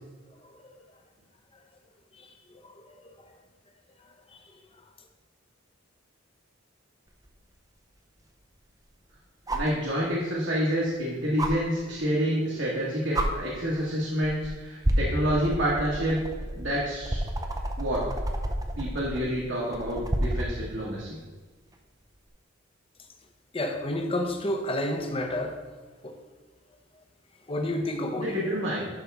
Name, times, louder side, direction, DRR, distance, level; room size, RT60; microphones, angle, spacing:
voice 1, 0.4-0.8 2.2-2.7 3.0-3.1 4.3-4.4 23.5-25.6 26.0-26.2 27.5-28.4, left 1 dB, 30° left, 4 dB, 0.8 m, -31 dB
sound 1, 7.2-7.3 9.5-9.8 11.4-11.5 12.7-12.8 13.1-13.3 14.2-14.5 14.8-20.5 22.2-22.3, right 1 dB, 20° right, 0.6 m, -29 dB
voice 2, 9.5-16.2 16.5-17.2 17.8-18.1 18.8-21.2 28.2-28.9, equal, 65° right, -5 dB, 1.5 m, -28 dB
11.0 x 5.3 x 3.5 m, 1.4 s
head